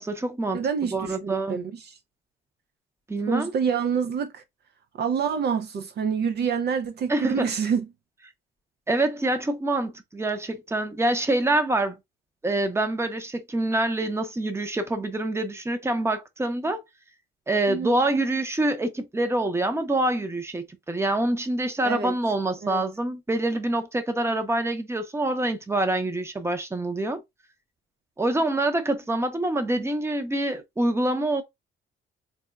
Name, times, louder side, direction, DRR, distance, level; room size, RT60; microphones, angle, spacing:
voice 1, 0.0-1.6 3.1-3.5 7.1-7.5 8.9-12.0 12.4-16.8 17.5-27.2 28.2-31.4, right 2 dB, 15° right, 0.7 m, -26 dB
voice 2, 0.5-2.0 3.3-4.4 5.0-7.9 17.7-18.0 21.8-22.1 22.6-22.8, right 7 dB, 55° right, 0.5 m, -27 dB
4.0 x 2.2 x 2.3 m
cardioid pair, 90°, 20 cm